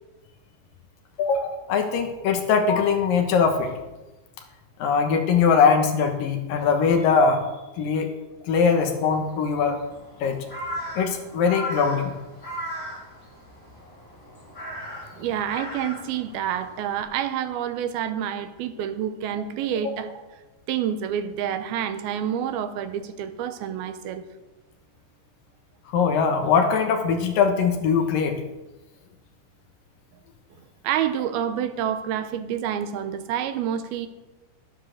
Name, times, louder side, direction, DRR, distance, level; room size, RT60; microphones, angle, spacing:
voice 1, 1.2-3.7 4.8-7.4 7.8-8.1 8.4-9.8 10.2-10.4 11.0-12.1 19.8-19.9 25.9-28.4, left 5 dB, 70° left, 5 dB, 2.7 m, -21 dB
Crow, 8.5-17.0, equal, 20° left, 5.4 m, -38 dB
voice 2, 15.2-20.1 20.7-24.2 30.6-34.1, right 9 dB, 80° right, 10 dB, 2.6 m, -28 dB
12.5 x 10.0 x 6.4 m, 1.1 s
omnidirectional pair, 4.5 m